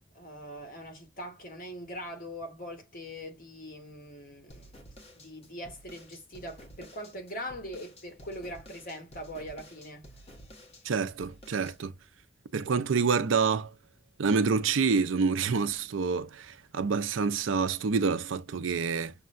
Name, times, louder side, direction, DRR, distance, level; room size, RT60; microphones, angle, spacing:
voice 1, 0.1-4.8 5.2-10.1, equal, 50° left, 1.7 m, -42 dB
sound 1, 4.5-11.8, equal, 35° left, 1.1 m, -52 dB
voice 2, 10.8-11.9 12.5-13.7 14.2-19.1, right 5 dB, 85° right, 0.5 m, -27 dB
6.5 x 2.2 x 2.4 m
head